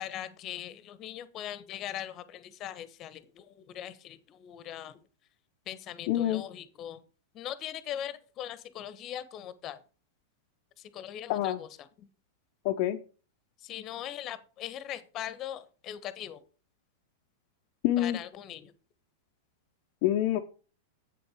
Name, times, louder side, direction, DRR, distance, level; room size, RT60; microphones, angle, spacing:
voice 1, 0.0-5.0 5.7-7.0 7.3-9.8 10.9-11.7 12.0-12.1 13.6-16.4 18.0-18.7, left 11 dB, 35° left, 14 dB, 1.1 m, -40 dB
voice 2, 6.1-6.4 11.3-11.6 12.6-13.0 17.8-18.2 20.0-20.4, left 13 dB, 55° left, 2 dB, 0.8 m, -26 dB
8.0 x 7.8 x 5.0 m, 0.38 s
hypercardioid pair, 105°, 0 cm